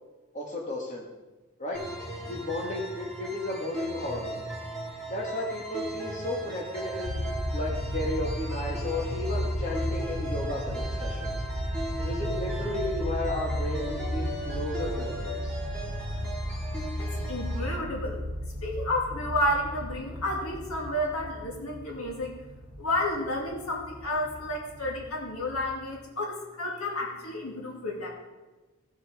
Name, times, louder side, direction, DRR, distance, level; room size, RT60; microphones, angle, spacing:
voice 1, 0.3-1.1 1.6-1.8 2.3-4.4 5.1-7.2 7.5-11.4 12.0-15.6, left 1 dB, 35° left, -2 dB, 1.8 m, -34 dB
sound 1, 1.7-17.7, right 1 dB, 5° left, 2.4 m, -37 dB
sound 2, 7.0-25.7, equal, 70° right, 1.5 m, -34 dB
voice 2, 17.0-18.2 18.6-22.3 22.8-28.1, left 1 dB, 80° left, -1 dB, 2.4 m, -31 dB
16.0 x 6.5 x 4.9 m, 1.2 s
head